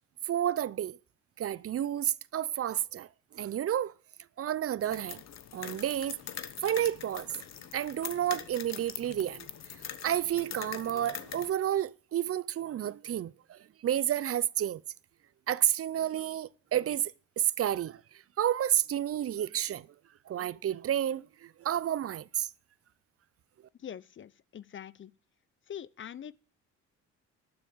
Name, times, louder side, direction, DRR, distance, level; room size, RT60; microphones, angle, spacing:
voice 1, 0.3-1.0 1.4-3.1 3.3-3.9 4.4-5.2 5.5-6.2 6.6-7.4 7.7-9.5 10.0-14.8 15.5-18.0 18.4-19.9 20.3-22.5, right 11 dB, 50° right, 0.6 m, -30 dB
sound 1, 4.8-11.5, left 9 dB, 60° left, 1.2 m, -43 dB
voice 2, 23.8-25.1 25.7-26.3, left 9 dB, 40° left, 0.6 m, -43 dB
12.0 x 7.1 x 7.2 m
cardioid pair, 90°, 30 cm